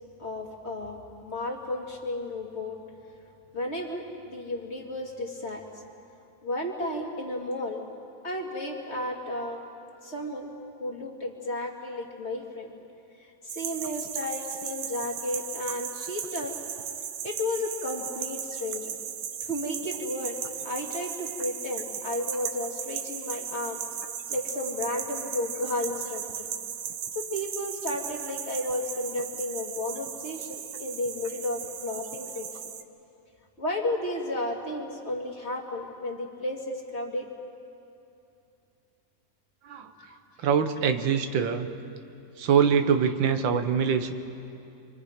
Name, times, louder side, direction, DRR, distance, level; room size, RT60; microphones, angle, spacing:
voice 1, 0.2-2.8 3.5-5.7 6.4-7.8 8.2-9.6 10.0-10.5 10.8-12.7 13.5-16.6 17.2-19.0 19.5-20.4 20.6-23.8 24.3-26.5 27.1-32.7 33.6-37.3 40.1-40.2, left 1 dB, 35° left, -1 dB, 2.5 m, -33 dB
sound 1, 13.5-32.8, right 8 dB, 60° right, 1.2 m, -36 dB
voice 2, 40.4-41.7 42.4-44.1, right 7 dB, 90° right, 7 dB, 1.8 m, -24 dB
28.0 x 24.5 x 5.1 m, 2.7 s
omnidirectional pair, 2.0 m